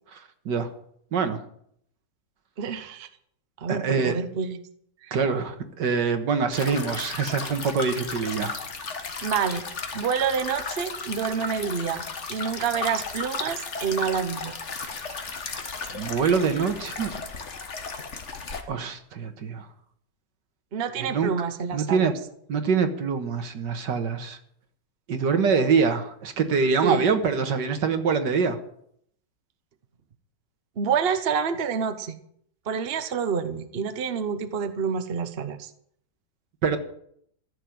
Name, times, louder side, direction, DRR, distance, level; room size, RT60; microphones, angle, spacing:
voice 1, 1.1-1.4 3.7-4.1 5.1-8.6 15.9-17.1 18.7-19.7 21.0-21.3 21.7-22.1 22.5-24.4 25.1-28.6 36.6-36.8, right 5 dB, 80° right, 8 dB, 2.0 m, -24 dB
voice 2, 2.6-3.1 3.6-4.6 5.0-5.2 9.2-9.6 9.9-12.0 12.3-14.5 20.7-22.1 26.8-27.0 30.8-32.2 32.7-35.7, right 6 dB, 40° right, 10 dB, 1.0 m, -28 dB
sound 1, 6.5-18.6, left 4 dB, 45° left, 1.6 m, -35 dB
14.5 x 6.9 x 9.2 m, 0.68 s
omnidirectional pair, 1.9 m